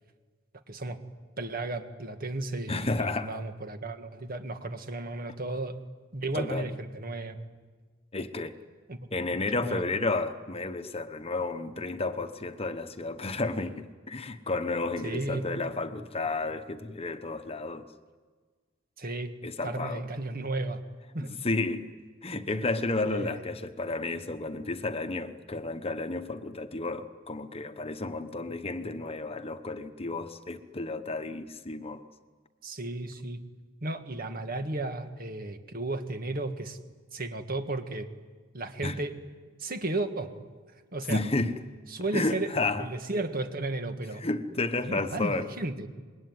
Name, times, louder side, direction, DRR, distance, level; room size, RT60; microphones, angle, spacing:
voice 1, 0.7-1.0 1.4-5.8 6.1-7.4 8.9-9.1 9.6-9.8 15.0-15.4 19.0-19.3 19.6-20.8 21.1-21.3 23.1-23.4 32.6-33.4 33.8-36.8 37.1-38.1 38.5-39.2 39.6-40.4 40.9-41.2 41.9-42.5 42.8-44.2 44.9-45.9, right 2 dB, 45° right, 7 dB, 1.9 m, -34 dB
voice 2, 2.7-3.4 6.3-6.7 8.1-8.5 9.1-17.9 19.4-20.0 21.4-21.9 22.2-32.0 38.8-39.0 41.1-41.6 42.1-42.9 44.2-45.5, left 2 dB, 30° left, 9 dB, 1.1 m, -32 dB
26.0 x 22.0 x 9.6 m, 1.4 s
head